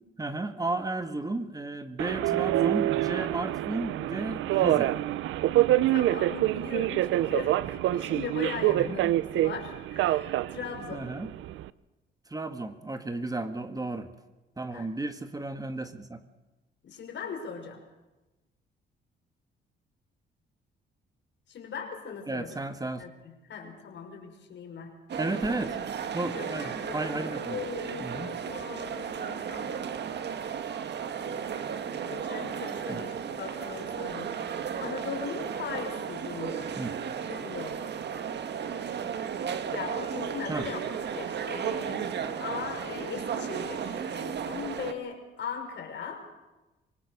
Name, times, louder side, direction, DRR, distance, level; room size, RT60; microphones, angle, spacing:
voice 1, 0.2-4.9 8.7-9.0 10.9-11.3 12.3-14.1 14.6-16.2 22.3-23.0 25.2-25.8 26.1-27.6 28.0-28.3 32.9-33.0 36.8-36.9 40.5-40.7, right 2 dB, 20° right, 8 dB, 1.7 m, -33 dB
Subway metro underground, 2.0-11.7, right 14 dB, 80° right, 0.6 m, -26 dB
voice 2, 5.9-11.1 14.7-14.9 16.8-17.8 21.5-22.6 23.0-25.0 26.3-29.8 31.2-34.3 34.8-36.7 37.2-37.8 39.7-40.8 41.1-46.3, left 6 dB, 65° left, 2 dB, 5.9 m, -39 dB
sound 1, 25.1-44.9, right 7 dB, 60° right, 1.7 m, -34 dB
25.5 x 19.0 x 6.7 m, 1.1 s
cardioid pair, 90°, 20 cm